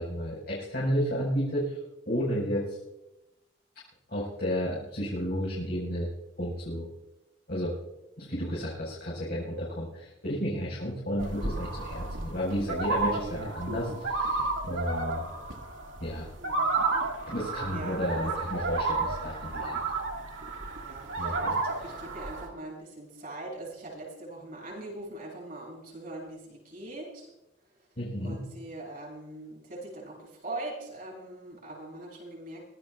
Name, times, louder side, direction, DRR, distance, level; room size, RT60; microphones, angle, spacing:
voice 1, 0.0-1.8 2.0-2.8 4.1-6.1 6.4-6.9 7.5-7.7 8.2-15.2 16.0-16.3 17.3-19.8 21.2-21.6 28.0-28.4, equal, 55° left, -6 dB, 5.1 m, -32 dB
sound 1, 11.2-22.5, right 3 dB, 80° right, 2.2 m, -32 dB
voice 2, 16.4-16.7 17.7-18.3 20.8-27.3 28.2-32.6, right 2 dB, 45° right, -3 dB, 7.4 m, -42 dB
24.5 x 17.0 x 2.4 m, 0.93 s
head